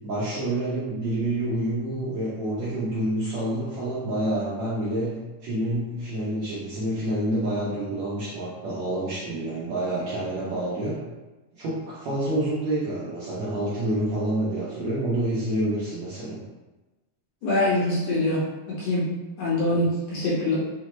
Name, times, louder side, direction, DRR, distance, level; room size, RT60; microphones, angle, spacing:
voice 1, 0.0-5.1 5.4-11.0 11.6-16.4 19.7-19.8, right 1 dB, 75° right, -9 dB, 1.6 m, -28 dB
voice 2, 17.4-19.1 19.4-20.6, left 2 dB, 70° left, -7 dB, 2.2 m, -24 dB
5.9 x 2.1 x 3.0 m, 1.1 s
omnidirectional pair, 4.1 m